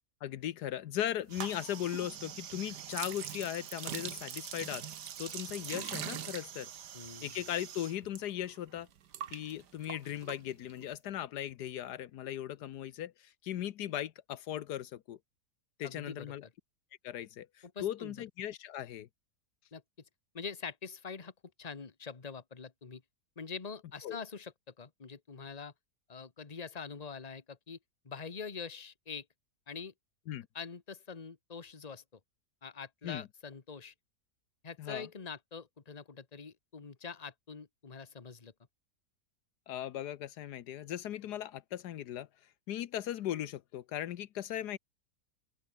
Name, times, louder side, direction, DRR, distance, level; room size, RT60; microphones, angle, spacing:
voice 1, 0.2-4.9 5.2-6.7 7.2-8.9 9.3-15.2 15.8-16.5 17.0-19.1 24.0-24.2 30.3-30.5 33.0-33.3 34.8-35.1 39.7-42.3 42.7-44.8, left 11 dB, 80° left, 1.4 m, -38 dB
sound 1, 1.3-8.2 8.5-10.9, right 9 dB, 90° right, 1.8 m, -43 dB
voice 2, 6.9-7.3 15.8-16.3 17.7-18.1 19.7-19.8 20.3-21.3 21.6-23.0 23.4-25.7 26.1-27.8 28.0-29.2 29.7-29.9 30.5-32.0 32.6-33.9 34.6-38.5, left 5 dB, 25° left, 1.4 m, -44 dB
open air
omnidirectional pair, 1.7 m